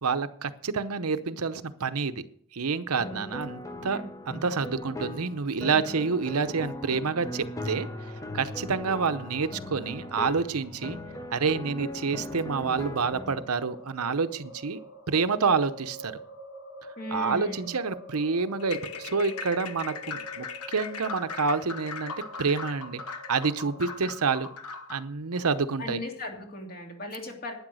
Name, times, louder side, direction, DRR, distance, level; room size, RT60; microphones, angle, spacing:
voice 1, 0.0-2.1 2.5-7.9 8.3-11.0 11.3-14.8 15.1-16.1 17.1-23.0 23.3-24.5 24.9-26.0, right 5 dB, 80° right, 12 dB, 0.8 m, -28 dB
sound 1, 3.0-13.4, left 1 dB, 15° left, 0.9 m, -39 dB
sound 2, 6.2-24.0, equal, 65° left, 5.2 m, -48 dB
voice 2, 17.0-17.7 25.8-27.5, left 1 dB, 45° left, 2 dB, 2.9 m, -37 dB
sound 3, 18.6-25.1, left 5 dB, 85° left, 1.2 m, -39 dB
12.0 x 9.7 x 6.3 m, 0.62 s
head